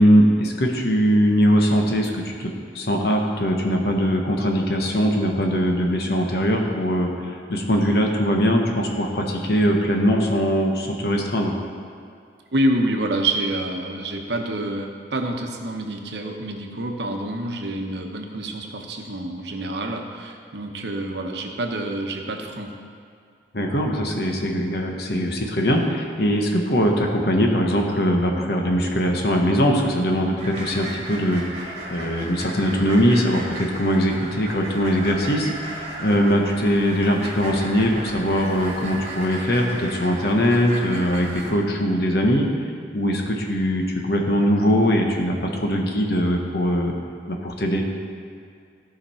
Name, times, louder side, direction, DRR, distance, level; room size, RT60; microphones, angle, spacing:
voice 1, 0.0-2.5 2.7-11.5 23.5-42.5 42.9-46.9 47.3-47.8, equal, 60° left, 1 dB, 1.2 m, -21 dB
voice 2, 12.5-22.7, right 1 dB, 70° right, 3 dB, 0.9 m, -27 dB
sound 1, 30.4-41.5, right 1 dB, 35° right, 1.5 m, -35 dB
14.5 x 5.2 x 4.4 m, 2.3 s
head